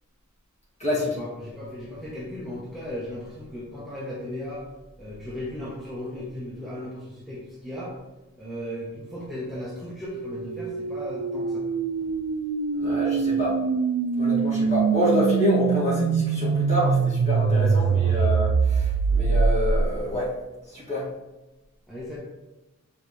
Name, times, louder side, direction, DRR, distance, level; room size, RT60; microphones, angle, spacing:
voice 1, 1.2-4.7 5.0-7.9 8.4-11.6 17.5-18.3 21.9-22.2, left 1 dB, ahead, -7 dB, 1.0 m, -36 dB
sound 1, 10.0-20.1, right 5 dB, 75° right, 0.3 m, -24 dB
voice 2, 12.8-13.6 14.2-20.3 20.7-21.1, equal, 30° left, -7 dB, 2.0 m, -27 dB
7.3 x 4.1 x 3.2 m, 1.0 s
head